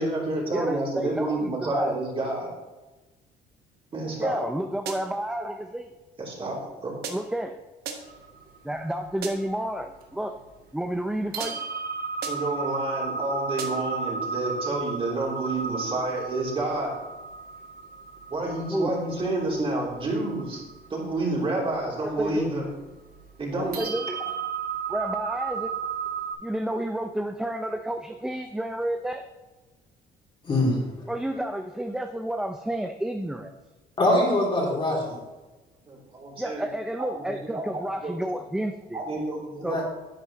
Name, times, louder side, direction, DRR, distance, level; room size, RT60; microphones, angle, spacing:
voice 1, 0.0-2.5 3.9-4.4 6.2-6.6 6.8-7.0 12.3-17.0 18.3-20.6 20.9-22.6 23.4-23.8 35.9-36.7 37.4-37.6 38.0-38.1 38.9-39.7, right 2 dB, 35° right, -3 dB, 3.2 m, -29 dB
voice 2, 0.5-2.0 4.2-5.9 7.1-7.6 8.6-10.3 10.7-11.6 18.7-19.0 22.0-22.5 23.6-24.2 24.9-25.7 26.4-29.2 31.1-33.5 36.4-39.0 39.6-39.8, right 1 dB, 5° right, 6 dB, 0.5 m, -30 dB
sound 1, 4.9-5.3 7.0-7.5 7.8-8.3 9.2-9.6 11.4-11.8 12.2-12.6 13.6-14.0, right 6 dB, 75° right, 1.2 m, -38 dB
sound 2, 8.0-10.4 10.9-11.0 11.3-26.3, right 5 dB, 55° right, 1.7 m, -34 dB
voice 3, 30.4-31.1 34.0-35.2 39.6-39.8, left 1 dB, 30° left, -3 dB, 2.9 m, -23 dB
10.5 x 8.0 x 3.0 m, 1.1 s
cardioid pair, 110°, 17 cm